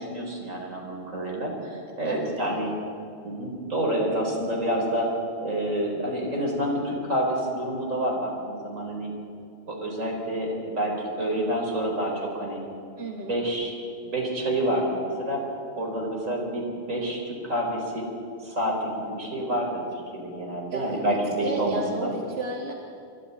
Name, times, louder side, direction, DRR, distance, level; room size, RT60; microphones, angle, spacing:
voice 1, 0.0-2.7 3.2-5.1 5.4-9.1 9.7-12.6 13.2-13.8 14.0-15.4 15.7-18.0 18.4-19.8 20.1-22.1, right 1 dB, 80° right, 0 dB, 4.7 m, -28 dB
voice 2, 2.0-2.8 13.0-13.4 20.7-22.7, right 2 dB, 55° right, 0 dB, 1.8 m, -34 dB
27.0 x 24.5 x 4.3 m, 2.6 s
omnidirectional pair, 1.3 m